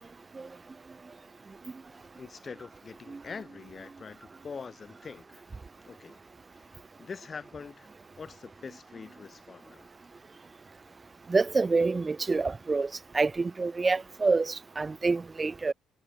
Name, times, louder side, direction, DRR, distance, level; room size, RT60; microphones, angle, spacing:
voice 1, 2.2-5.4 5.8-6.2 6.5-7.9 8.2-9.9, left 5 dB, 40° left, 3.5 m, -44 dB
voice 2, 11.3-12.9 13.1-15.7, right 3 dB, 30° right, 1.4 m, -27 dB
hypercardioid pair, 50°, 0 cm